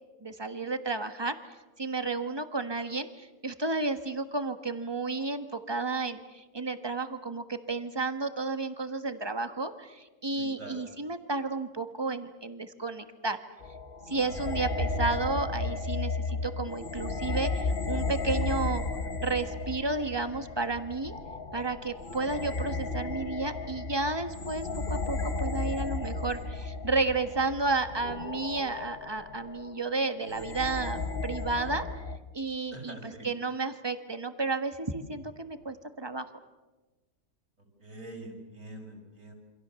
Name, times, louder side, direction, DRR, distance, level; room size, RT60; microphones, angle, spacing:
voice 1, 0.2-1.3 1.8-13.4 14.1-18.8 19.2-21.1 21.5-31.8 32.3-36.3, right 3 dB, 15° right, 9 dB, 1.4 m, -32 dB
voice 2, 10.4-10.8 32.7-33.3 37.8-39.3, right 1 dB, 55° right, 1 dB, 6.0 m, -44 dB
sound 1, 13.6-32.2, left 3 dB, 35° left, 1.5 m, -34 dB
28.0 x 26.0 x 7.0 m, 1.2 s
omnidirectional pair, 1.6 m